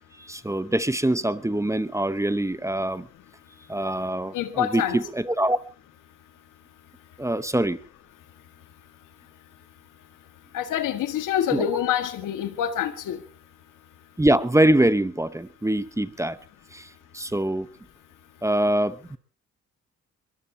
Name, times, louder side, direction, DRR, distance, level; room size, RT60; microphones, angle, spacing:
voice 1, 0.2-3.1 3.7-5.6 7.2-7.8 11.5-11.7 14.2-16.4 16.7-16.9 17.1-17.7 18.4-19.2, right 1 dB, 10° right, 0.9 m, -24 dB
voice 2, 4.3-5.0 10.5-13.2, left 10 dB, 85° left, 1.8 m, -26 dB
22.5 x 22.0 x 2.9 m
supercardioid pair, 65°, 31 cm